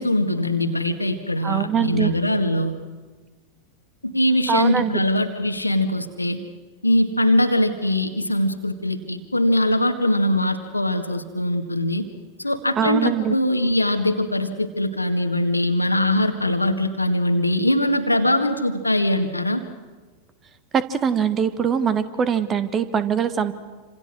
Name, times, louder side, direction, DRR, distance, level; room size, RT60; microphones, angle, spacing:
voice 1, 0.0-2.7 4.0-6.4 6.8-12.1 12.4-19.6, left 1 dB, 85° left, 7 dB, 1.9 m, -22 dB
voice 2, 1.4-2.1 4.5-4.9 12.8-13.3 20.7-23.5, right 7 dB, 25° right, 13 dB, 1.6 m, -22 dB
28.0 x 26.5 x 6.3 m, 1.3 s
figure-of-eight pair, 90°, 0 cm